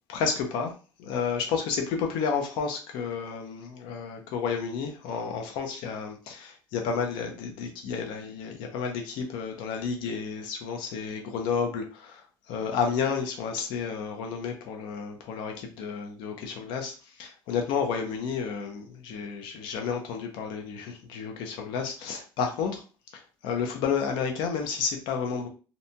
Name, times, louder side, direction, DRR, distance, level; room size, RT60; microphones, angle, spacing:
voice 1, 0.1-0.7 1.0-22.8 23.1-25.5, left 6 dB, 80° left, 3 dB, 0.5 m, -31 dB
2.6 x 2.2 x 2.7 m, 0.34 s
cardioid pair, 130°, 8 cm